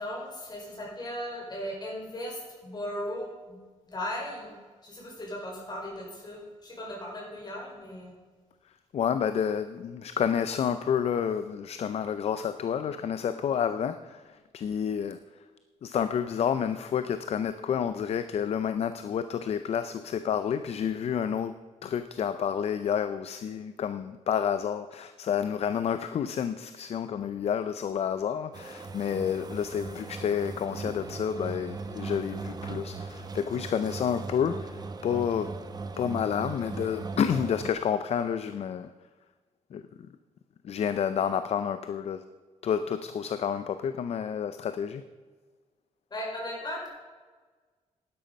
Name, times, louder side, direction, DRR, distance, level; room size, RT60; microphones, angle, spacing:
voice 1, 0.0-3.6 3.9-8.1 46.1-46.9, left 1 dB, 35° left, -1 dB, 5.0 m, -37 dB
voice 2, 8.9-15.2 15.8-35.6 36.0-38.9 39.7-39.8 40.6-42.2 42.6-45.0, left 8 dB, 60° left, 11 dB, 0.5 m, -29 dB
sound 1, 28.5-37.7, right 4 dB, 35° right, 1.0 m, -39 dB
11.5 x 11.0 x 5.3 m, 1.4 s
cardioid pair, 115°, 12 cm